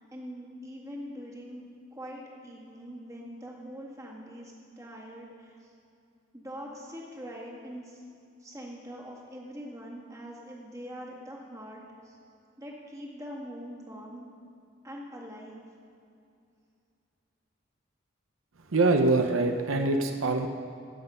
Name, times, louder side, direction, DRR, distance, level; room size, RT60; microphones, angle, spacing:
voice 1, 0.0-1.6 1.9-5.7 6.3-8.0 8.4-12.2 12.6-14.3 14.8-15.6, equal, 15° right, -3 dB, 1.8 m, -43 dB
voice 2, 18.7-20.5, right 2 dB, 75° right, 5 dB, 0.7 m, -24 dB
16.0 x 8.1 x 5.5 m, 2.6 s
head